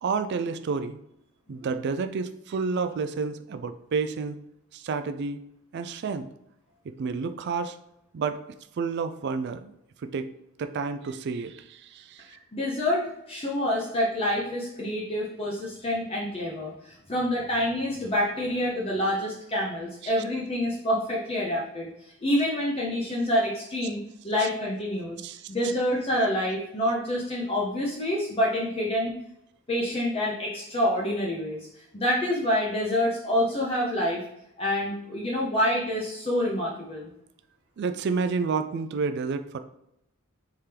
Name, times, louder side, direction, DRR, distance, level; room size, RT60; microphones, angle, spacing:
voice 1, 0.0-1.0 1.5-4.4 4.7-5.4 5.7-6.3 6.8-7.8 8.1-8.4 8.8-9.7 10.0-10.3 10.6-12.3 20.0-20.2 24.4-24.5 25.2-25.5 37.8-39.6, right 5 dB, 55° right, 10 dB, 0.3 m, -30 dB
voice 2, 12.3-21.9 22.2-25.2 25.5-29.1 29.7-31.7 31.9-34.2 34.6-37.1, left 1 dB, 30° left, -4 dB, 0.7 m, -27 dB
4.4 x 3.6 x 3.3 m, 0.81 s
head